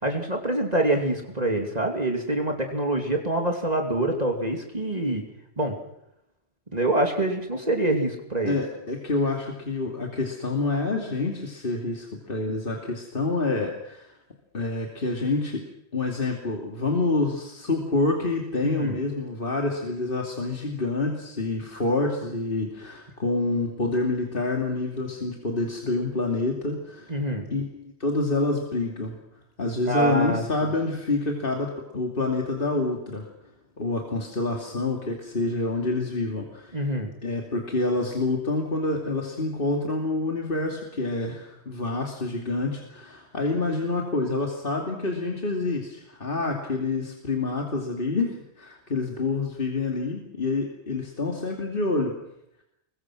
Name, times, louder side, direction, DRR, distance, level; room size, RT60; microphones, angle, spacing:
voice 1, 0.0-5.2 5.6-5.8 6.7-8.5 18.6-19.0 27.1-27.5 29.9-30.4 36.7-37.1, right 1 dB, 40° right, 2 dB, 2.7 m, -25 dB
voice 2, 8.4-14.2 14.5-15.6 15.9-27.2 27.5-29.2 29.6-33.3 33.8-36.8 37.2-52.1, left 3 dB, 55° left, 1 dB, 2.9 m, -27 dB
27.5 x 22.5 x 6.2 m, 0.82 s
omnidirectional pair, 1.1 m